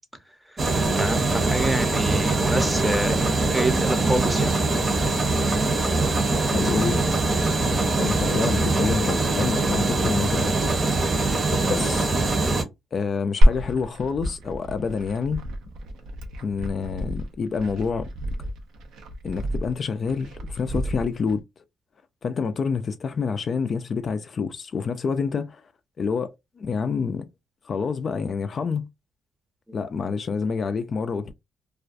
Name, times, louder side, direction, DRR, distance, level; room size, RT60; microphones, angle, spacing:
voice 1, 0.5-4.6, right 1 dB, 10° right, 0.6 m, -27 dB
sound 1, 0.6-12.6, right 3 dB, 35° right, 0.7 m, -23 dB
voice 2, 6.5-7.0 8.0-10.6 11.7-12.1 12.9-15.4 16.4-18.1 19.2-21.4 22.2-25.6 26.0-27.3 27.6-28.9 29.7-31.3, left 5 dB, 45° left, 0.3 m, -27 dB
Glass, 13.4-21.4, equal, 85° right, 0.5 m, -26 dB
2.4 x 2.2 x 2.5 m
cardioid pair, 90°, 0 cm